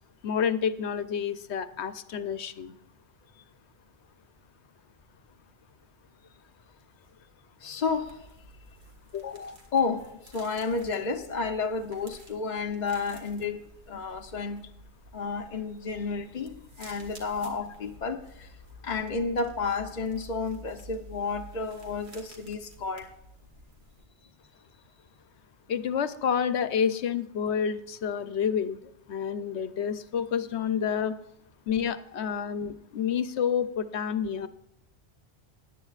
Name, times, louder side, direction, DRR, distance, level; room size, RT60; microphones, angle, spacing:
voice 1, 0.2-2.8 9.1-9.6 25.7-31.2 31.7-34.5, left 7 dB, 75° left, 1.0 m, -29 dB
voice 2, 7.6-8.3 9.7-13.6 13.9-14.6 15.1-18.5 18.8-23.1, left 4 dB, 45° left, 0.8 m, -31 dB
sound 1, 7.8-24.0, equal, 65° right, 2.2 m, -51 dB
18.0 x 11.0 x 2.4 m
omnidirectional pair, 1.2 m